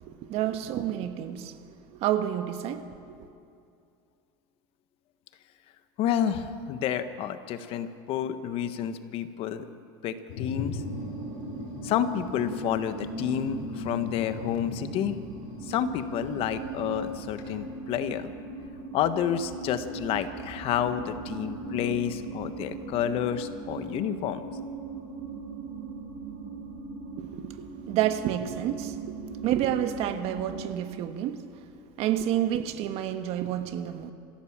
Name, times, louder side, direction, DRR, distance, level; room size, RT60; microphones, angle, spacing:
voice 1, 0.0-2.8 3.1-3.3 27.2-29.2 29.4-31.4 32.0-34.1, right 11 dB, 55° right, 8 dB, 1.5 m, -29 dB
voice 2, 6.0-9.6 10.0-10.8 11.8-15.2 15.6-18.3 18.9-24.5, left 9 dB, 50° left, 10 dB, 1.3 m, -30 dB
Thunder, 10.3-17.5, left 4 dB, 70° left, 6.8 m, -41 dB
sound 1, 10.7-30.6, right 3 dB, 75° right, 6.9 m, -39 dB
26.0 x 16.0 x 7.4 m, 2.5 s
supercardioid pair, 130°, 13 cm